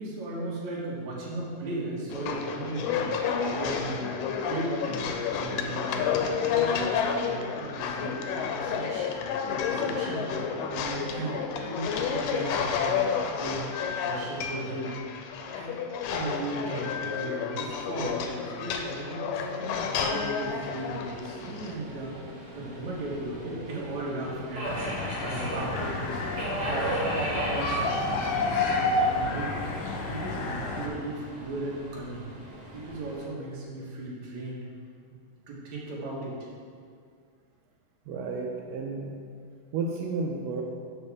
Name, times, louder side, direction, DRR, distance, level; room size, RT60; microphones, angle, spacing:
voice 1, 0.0-3.1 3.5-4.1 4.4-6.9 7.2-9.1 9.5-13.1 13.4-13.7 14.0-15.0 15.4-15.7 16.1-19.7 20.0-22.2 22.5-24.8 25.2-26.2 26.6-29.7 30.1-32.2 32.7-34.6 35.5-36.4, right 2 dB, 60° right, -5 dB, 2.7 m, -36 dB
sound 1, 2.1-21.8, left 6 dB, 90° left, 2.3 m, -30 dB
Subway metro underground, 20.4-33.2, right 1 dB, 35° right, 1.7 m, -37 dB
sound 2, 24.6-30.9, left 2 dB, 65° left, 2.1 m, -30 dB
voice 2, 38.1-39.2 39.7-40.6, right 4 dB, 85° right, 0 dB, 2.3 m, -32 dB
12.5 x 5.2 x 3.6 m, 2.2 s
omnidirectional pair, 3.9 m